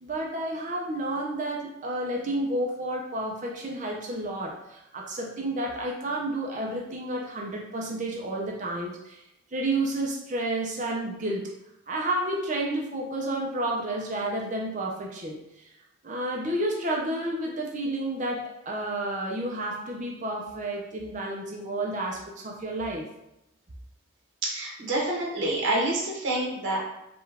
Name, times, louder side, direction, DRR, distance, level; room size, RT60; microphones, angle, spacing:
voice 1, 0.0-9.2 9.5-11.5 11.9-15.7 16.0-23.1, right 1 dB, 35° right, -1 dB, 0.6 m, -31 dB
voice 2, 24.4-26.8, right 1 dB, 60° right, -3 dB, 1.3 m, -27 dB
5.0 x 2.4 x 3.4 m, 0.88 s
head